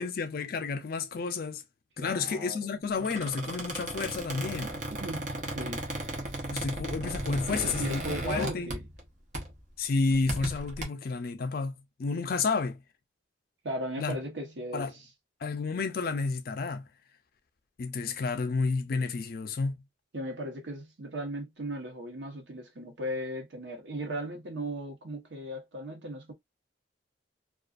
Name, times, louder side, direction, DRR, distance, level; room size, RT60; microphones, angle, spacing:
voice 1, 0.0-1.6 2.0-4.7 6.5-8.7 9.8-11.7 12.0-12.8 14.0-14.2 14.7-14.9 15.4-16.8 17.8-19.8, left 4 dB, 55° left, 0.4 m, -31 dB
voice 2, 2.0-2.7 4.6-5.9 7.5-8.8 13.6-15.0 20.1-26.3, right 1 dB, 80° right, 0.9 m, -37 dB
Squeak, 3.0-9.1 9.3-9.6 10.1-10.8, right 1 dB, 40° right, 0.7 m, -36 dB
2.4 x 2.3 x 2.4 m
head